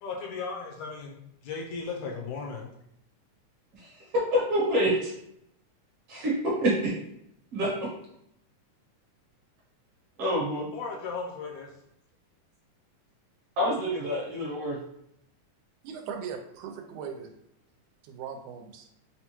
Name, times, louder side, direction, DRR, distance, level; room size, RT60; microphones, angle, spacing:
voice 1, 0.0-2.7 10.7-11.7, left 4 dB, 75° left, -1 dB, 2.0 m, -36 dB
voice 2, 3.7-5.1 6.1-6.9 7.5-7.9 10.2-10.7 13.6-14.8, equal, 60° right, -5 dB, 1.7 m, -27 dB
voice 3, 15.8-17.3 18.0-18.9, right 7 dB, 85° right, 5 dB, 2.0 m, -39 dB
5.7 x 2.2 x 2.9 m, 0.77 s
omnidirectional pair, 3.5 m